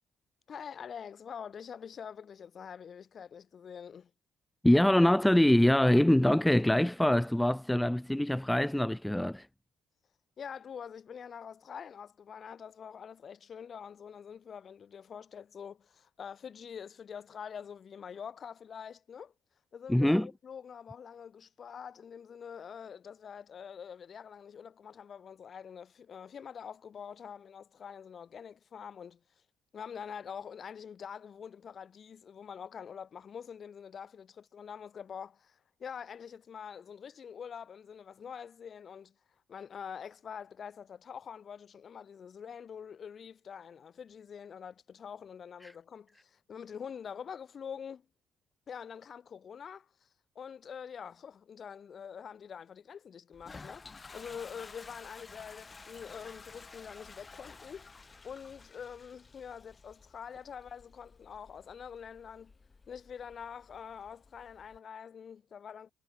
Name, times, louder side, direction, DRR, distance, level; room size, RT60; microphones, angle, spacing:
voice 1, 0.5-4.1 10.4-19.3 19.7-29.2 29.7-39.1 39.5-48.0 48.7-50.1 50.3-57.9 58.2-62.5 62.9-65.9, left 7 dB, 50° left, 4.4 m, -45 dB
voice 2, 4.6-9.5 19.9-20.3 45.6-45.7, left 1 dB, 5° left, 0.4 m, -24 dB
Toilet flush, 53.3-64.8, left 4 dB, 30° left, 4.4 m, -53 dB
hypercardioid pair, 60°, 0 cm